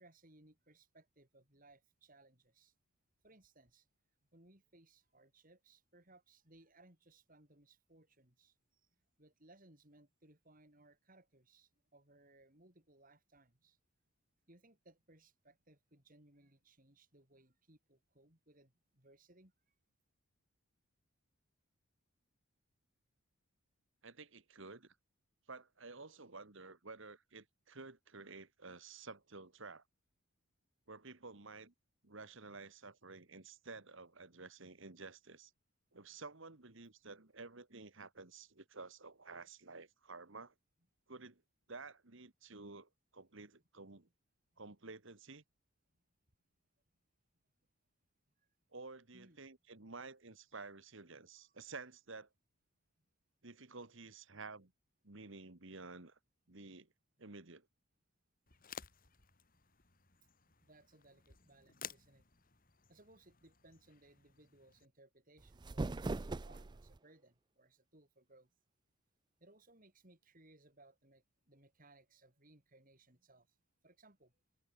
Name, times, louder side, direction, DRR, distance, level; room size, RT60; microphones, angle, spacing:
voice 1, 0.0-2.7 3.2-3.9 4.3-8.9 9.2-13.8 14.5-19.5 44.5-44.6 48.4-48.5 49.1-49.5 58.6-58.7 60.5-62.2 62.9-68.5 69.4-73.6 73.8-74.4, right 2 dB, 40° right, 4.6 m, -65 dB
voice 2, 24.0-25.0 25.5-29.8 30.9-31.7 32.0-35.5 35.9-40.5 41.1-41.4 41.7-44.1 44.6-45.4 48.7-52.3 53.4-54.7 55.0-56.2 56.5-56.9 57.2-57.7, right 3 dB, 60° right, 1.7 m, -52 dB
sound 1, 58.5-64.9, left 8 dB, 40° left, 3.3 m, -55 dB
sound 2, 65.4-67.0, right 2 dB, 20° right, 0.3 m, -40 dB
head